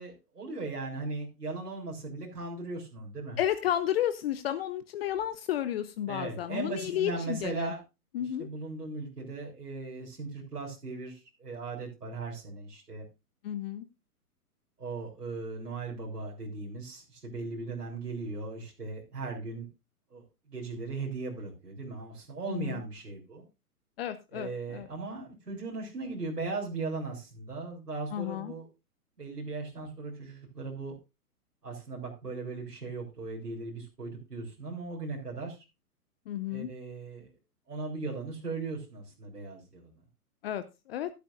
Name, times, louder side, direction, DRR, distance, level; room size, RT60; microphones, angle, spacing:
voice 1, 0.0-3.4 6.1-7.8 8.2-13.0 14.8-19.7 20.1-23.5 24.3-28.7 29.2-30.9 31.6-35.7 36.5-37.3 37.7-40.0, right 3 dB, 90° right, -2 dB, 3.9 m, -38 dB
voice 2, 3.4-7.7 8.1-8.5 13.4-13.8 22.5-22.8 24.0-24.9 28.1-28.5 36.3-36.7 40.4-41.1, left 11 dB, 40° left, 13 dB, 0.8 m, -32 dB
12.0 x 12.0 x 2.6 m, 0.27 s
hypercardioid pair, 125°, 46 cm